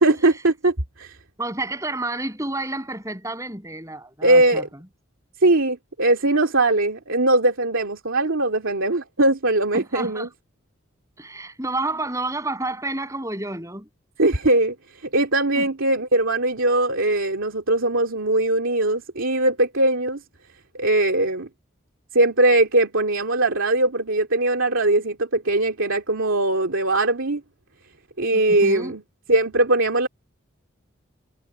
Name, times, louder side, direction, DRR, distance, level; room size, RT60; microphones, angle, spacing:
voice 1, 0.0-1.2 4.2-4.7 5.4-10.3 14.2-20.2 20.7-21.5 22.1-27.4 28.2-29.0 29.3-30.1, right 2 dB, 85° right, 2.5 m, -20 dB
voice 2, 1.4-4.6 9.7-10.3 11.2-13.9 15.6-15.7 28.3-28.9, right 2 dB, 15° right, 7.7 m, -30 dB
head